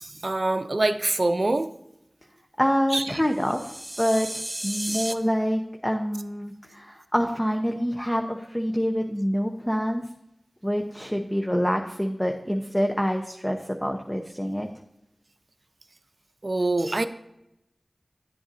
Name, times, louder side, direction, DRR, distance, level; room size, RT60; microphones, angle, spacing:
voice 1, 0.0-1.7 2.9-3.0 4.9-5.0 16.4-17.1, right 2 dB, 55° right, 10 dB, 0.6 m, -25 dB
voice 2, 2.6-10.0 10.6-14.7, equal, 10° left, 3 dB, 0.8 m, -26 dB
sound 1, 3.3-5.1, right 1 dB, 15° right, 0.7 m, -34 dB
10.5 x 7.7 x 2.7 m, 0.84 s
wide cardioid pair, 45°, 0 cm